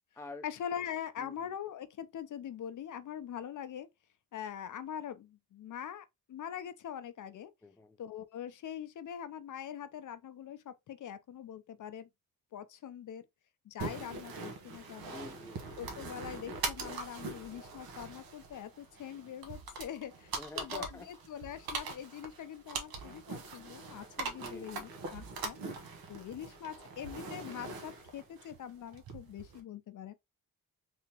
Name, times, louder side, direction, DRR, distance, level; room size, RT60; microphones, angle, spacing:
voice 1, 0.4-3.9 4.3-7.5 8.0-12.1 12.5-13.3 13.6-15.2 15.8-25.6 26.1-30.1, left 9 dB, 60° left, 0.5 m, -43 dB
voice 2, 7.6-8.0 15.1-15.8 20.3-21.1 24.3-24.8, left 2 dB, 10° left, 0.5 m, -47 dB
sound 1, 13.8-29.6, right 4 dB, 90° right, 0.9 m, -42 dB
3.4 x 2.8 x 2.8 m
cardioid pair, 90°, 35 cm